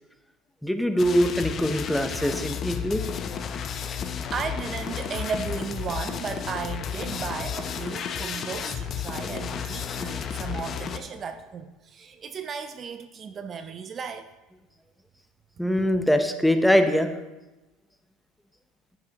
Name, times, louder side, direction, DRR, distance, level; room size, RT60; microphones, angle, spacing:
voice 1, 0.6-3.1 15.6-17.1, equal, ahead, 8 dB, 0.7 m, -23 dB
sound 1, 1.0-11.0, left 7 dB, 35° left, 0.6 m, -32 dB
voice 2, 3.4-14.3, right 5 dB, 35° right, 9 dB, 0.5 m, -35 dB
9.7 x 9.7 x 2.9 m, 1.0 s
supercardioid pair, 120°, 0 cm